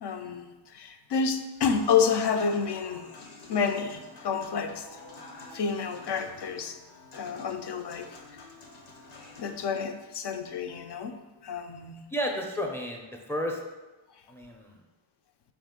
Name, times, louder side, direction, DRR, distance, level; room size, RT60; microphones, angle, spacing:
voice 1, 0.0-3.1 3.5-4.9 5.5-6.8 7.1-8.1 9.4-11.1 11.4-12.0, left 6 dB, 55° left, 6 dB, 0.5 m, -29 dB
Human voice / Acoustic guitar / Piano, 1.6-9.6, left 3 dB, 85° left, 0.8 m, -48 dB
voice 2, 12.1-13.6 14.3-14.8, equal, 5° left, 1 dB, 0.5 m, -32 dB
3.6 x 2.5 x 3.6 m, 1.1 s
cardioid pair, 65°, 50 cm